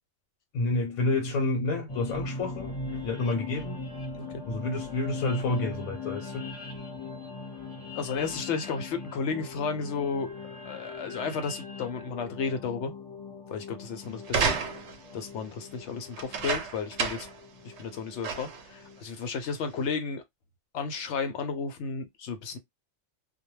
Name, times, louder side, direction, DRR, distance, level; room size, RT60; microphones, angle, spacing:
voice 1, 0.5-2.8 3.0-3.8 4.5-6.4, left 2 dB, 90° left, 1.1 m, -29 dB
sound 1, 1.9-19.0, left 3 dB, 25° left, 0.8 m, -41 dB
voice 2, 7.9-12.9 13.5-14.6 15.1-17.3 17.6-20.2 20.7-22.6, left 5 dB, 65° left, 0.8 m, -33 dB
sound 2, 14.2-15.1 16.1-17.4 17.8-17.9 18.2-18.7 19.4-19.5, right 5 dB, 65° right, 0.8 m, -30 dB
2.2 x 2.2 x 3.0 m
omnidirectional pair, 1.4 m